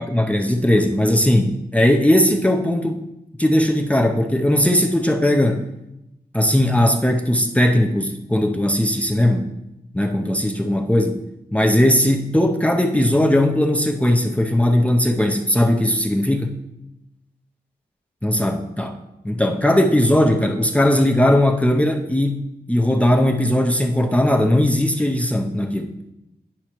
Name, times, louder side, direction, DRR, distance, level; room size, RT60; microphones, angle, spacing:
voice 1, 0.0-3.0 3.4-5.6 6.3-9.5 9.9-11.2 11.5-16.5 18.2-19.0 19.2-25.9, left 1 dB, 10° left, 2 dB, 0.6 m, -18 dB
9.9 x 5.4 x 3.0 m, 0.90 s
wide cardioid pair, 80°, 17 cm